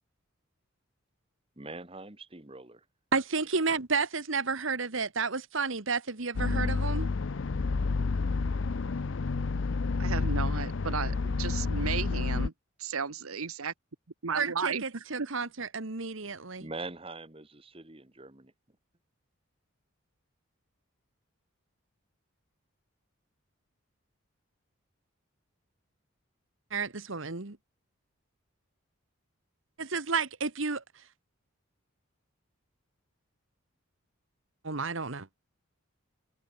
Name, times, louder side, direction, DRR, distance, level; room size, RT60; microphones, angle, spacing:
voice 1, 1.6-2.8 16.6-18.5, right 2 dB, 25° right, 1.7 m, -43 dB
voice 2, 3.1-7.1 14.3-16.7 26.7-27.6 29.8-31.0 34.6-35.3, right 4 dB, 65° right, 1.5 m, -31 dB
sound 1, 6.3-12.5, left 4 dB, 60° left, 0.5 m, -29 dB
voice 3, 10.0-12.5 12.8-13.7 14.2-15.3, right 5 dB, 90° right, 1.2 m, -34 dB
head